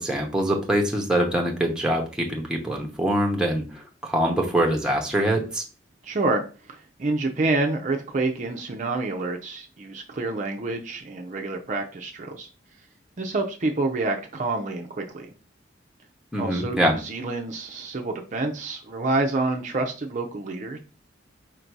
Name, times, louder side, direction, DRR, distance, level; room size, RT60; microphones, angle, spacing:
voice 1, 0.0-5.6 16.3-17.0, right 1 dB, 5° right, 0 dB, 0.7 m, -24 dB
voice 2, 6.0-12.5 13.2-15.3 16.4-20.8, right 2 dB, 40° right, 2 dB, 0.5 m, -28 dB
4.4 x 2.6 x 4.5 m, 0.36 s
head